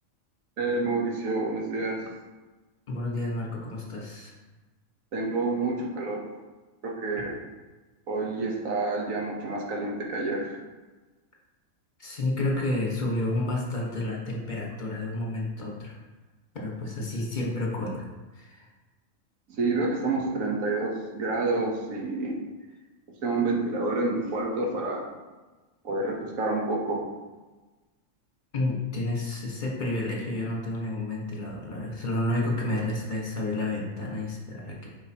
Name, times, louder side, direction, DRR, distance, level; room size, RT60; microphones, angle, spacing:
voice 1, 0.6-2.0 5.1-6.2 6.8-7.4 8.1-10.6 19.6-22.4 23.2-25.1 25.8-27.1, right 3 dB, 80° right, -1 dB, 1.5 m, -28 dB
voice 2, 2.9-4.3 12.0-16.0 16.5-18.0 18.3-18.7 28.5-35.0, left 2 dB, 35° left, -2 dB, 1.4 m, -30 dB
7.8 x 5.5 x 2.9 m, 1.2 s
omnidirectional pair, 1.4 m